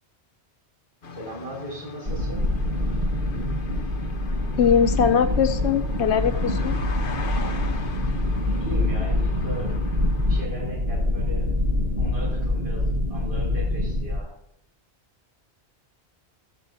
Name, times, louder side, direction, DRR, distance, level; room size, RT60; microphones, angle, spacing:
sound 1, 1.0-10.4, left 4 dB, 55° left, 1.1 m, -41 dB
voice 1, 1.1-2.4 8.6-9.8 10.3-11.6 11.9-14.3, equal, 60° right, -4 dB, 5.6 m, -37 dB
sound 2, 2.1-14.2, left 1 dB, 45° right, 1.5 m, -25 dB
voice 2, 4.6-6.7, left 7 dB, 90° left, 8 dB, 1.0 m, -21 dB
16.0 x 11.5 x 2.8 m, 0.72 s
omnidirectional pair, 1.1 m